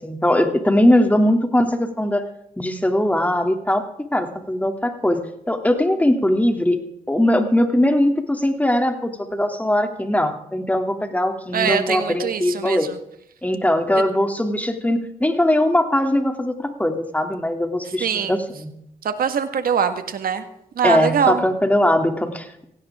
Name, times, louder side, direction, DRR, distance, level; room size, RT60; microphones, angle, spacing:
voice 1, 0.0-2.2 2.6-5.2 5.5-6.8 7.1-12.9 13.4-18.7 20.8-22.6, left 1 dB, 10° left, 5 dB, 2.7 m, -20 dB
voice 2, 11.5-12.9 18.0-18.4 19.0-20.4 20.8-21.4, right 7 dB, 75° right, 9 dB, 1.7 m, -22 dB
16.5 x 16.5 x 3.7 m, 0.75 s
cardioid pair, 60°, 15 cm